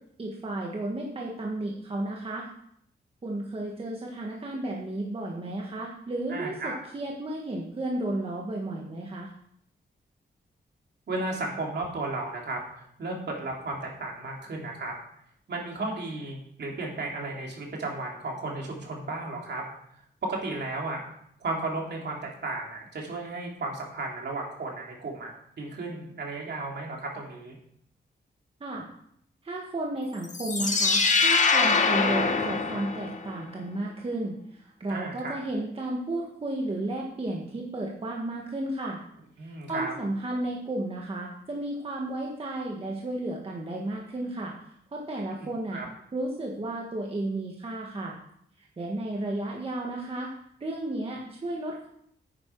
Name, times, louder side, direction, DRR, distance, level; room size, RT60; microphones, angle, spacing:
voice 1, 0.2-2.5 3.2-9.3 28.6-28.9 29.4-39.0 39.7-44.5 44.9-45.8 46.1-48.2 48.8-50.3 50.6-51.9, right 1 dB, 30° right, -1 dB, 1.5 m, -33 dB
voice 2, 6.3-6.8 11.1-14.9 15.5-19.6 20.2-21.0 21.4-27.6 34.9-35.4 39.4-39.9 45.7-45.9, right 2 dB, 60° right, -1 dB, 3.0 m, -34 dB
sound 1, 30.2-33.4, left 4 dB, 40° left, 1.2 m, -24 dB
9.8 x 9.7 x 4.6 m, 0.69 s
wide cardioid pair, 170°, 19 cm